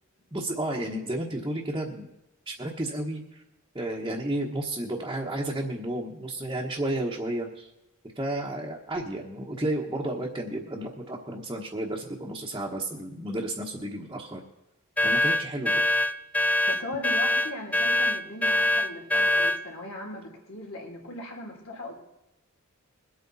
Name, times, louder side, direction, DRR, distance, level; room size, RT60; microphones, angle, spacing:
voice 1, 0.3-2.1 2.5-3.4 3.7-7.7 8.1-14.4 15.0-15.8, right 1 dB, 20° right, -3 dB, 1.2 m, -32 dB
sound 1, 15.0-19.6, left 1 dB, 5° left, 0.3 m, -24 dB
voice 2, 16.7-21.9, left 1 dB, 70° left, -1 dB, 3.6 m, -38 dB
22.0 x 8.8 x 4.1 m, 0.94 s
head